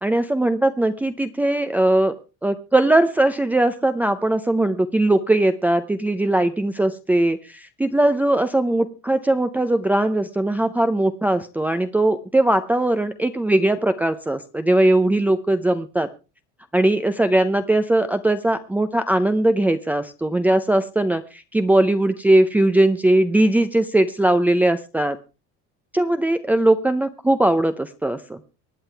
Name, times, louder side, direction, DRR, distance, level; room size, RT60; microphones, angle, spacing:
voice 1, 0.0-2.1 2.4-16.1 16.7-25.2 25.9-28.4, right 1 dB, 5° right, 7 dB, 0.6 m, -20 dB
24.5 x 9.5 x 3.4 m, 0.32 s
cardioid pair, 160°, 30 cm